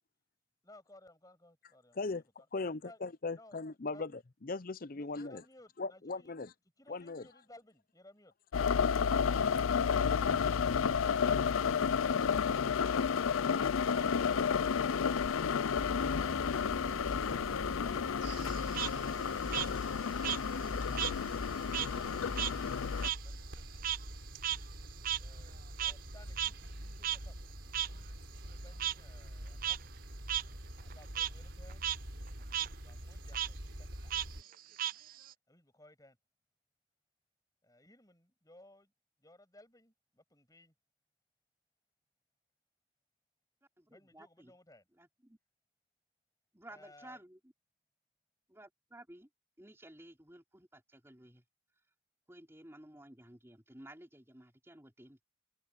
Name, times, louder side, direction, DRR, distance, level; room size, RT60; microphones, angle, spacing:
voice 1, 0.6-3.0 3.3-3.6 3.9-4.0 4.9-6.3 6.8-8.3 21.4-23.6 25.2-27.3 27.6-29.8 30.8-31.9 32.3-34.2 35.5-36.2 37.6-38.9 39.2-40.7 43.9-44.8 46.7-47.2, left 1 dB, 15° left, 6.5 m, -60 dB
voice 2, 2.5-4.1 4.4-5.4 5.8-6.5 6.9-7.2, left 3 dB, 45° left, 0.6 m, -38 dB
sound 1, 8.5-23.1, left 6 dB, 85° left, 0.5 m, -31 dB
sound 2, 15.7-34.4, equal, 65° right, 5.5 m, -46 dB
Frog, 18.3-21.2 21.5-26.1 26.4-26.5 27.0-27.2 27.7-27.9 28.8-28.9 29.5-29.8 30.3-30.4 30.8-31.3 31.7-32.0 32.3-32.7 33.3-33.5 34.1-35.3, right 11 dB, 45° right, 0.4 m, -36 dB
voice 3, 43.8-44.5 44.9-45.4 46.5-47.5 48.5-49.3 49.6-51.4 52.3-55.2, right 1 dB, 10° right, 3.6 m, -55 dB
head